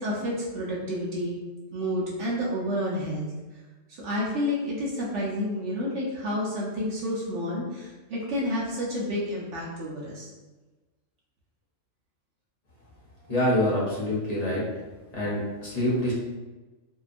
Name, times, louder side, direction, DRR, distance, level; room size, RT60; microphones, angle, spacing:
voice 1, 0.0-1.4 1.7-3.3 3.9-10.3, left 1 dB, 70° right, -5 dB, 0.9 m, -30 dB
voice 2, 13.3-14.6 15.1-16.1, left 1 dB, 40° left, -7 dB, 0.6 m, -26 dB
2.7 x 2.2 x 2.4 m, 1.2 s
omnidirectional pair, 1.3 m